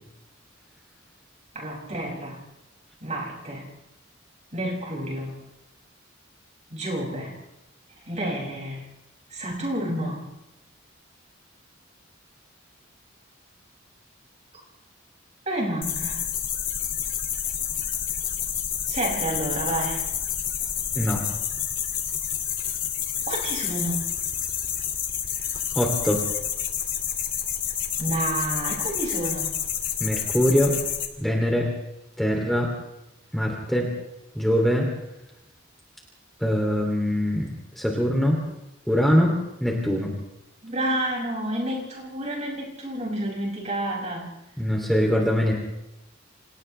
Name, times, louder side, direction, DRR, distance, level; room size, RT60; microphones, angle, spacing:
voice 1, 1.5-2.4 3.0-3.7 4.5-5.3 6.7-7.4 8.0-8.9 9.3-10.3 15.4-16.2 18.9-20.1 23.3-24.1 28.0-29.6 40.6-44.3, right 1 dB, 35° right, -2 dB, 6.5 m, -29 dB
sound 1, 15.8-31.1, left 9 dB, 45° left, 2.5 m, -29 dB
voice 2, 20.9-21.3 25.7-26.2 30.0-30.8 31.2-31.7 32.2-32.7 33.3-33.9 34.3-34.9 36.4-37.5 37.7-38.4 38.9-40.1 44.6-45.6, equal, ahead, -1 dB, 2.9 m, -23 dB
29.5 x 27.5 x 3.4 m, 0.92 s
head